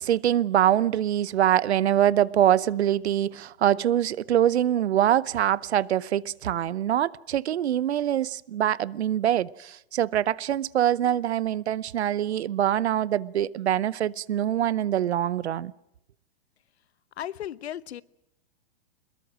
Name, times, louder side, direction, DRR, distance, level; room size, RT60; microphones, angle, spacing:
voice 1, 0.0-15.7, right 11 dB, 85° right, 0.9 m, -24 dB
voice 2, 17.2-18.0, left 11 dB, 80° left, 1.0 m, -35 dB
23.5 x 21.5 x 6.3 m
hypercardioid pair, 150°, 32 cm